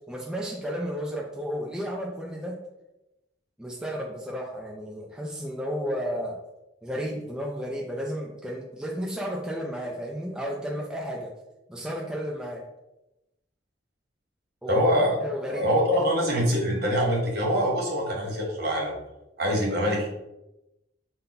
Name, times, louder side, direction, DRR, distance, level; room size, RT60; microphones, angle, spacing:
voice 1, 0.1-2.6 3.6-6.4 6.8-11.3 11.7-12.6 14.6-14.8 15.2-16.0, equal, 5° right, -2 dB, 0.4 m, -33 dB
voice 2, 14.7-15.2 15.5-18.9 19.4-20.1, equal, 60° right, -1 dB, 1.2 m, -24 dB
5.3 x 2.2 x 3.9 m, 0.94 s
head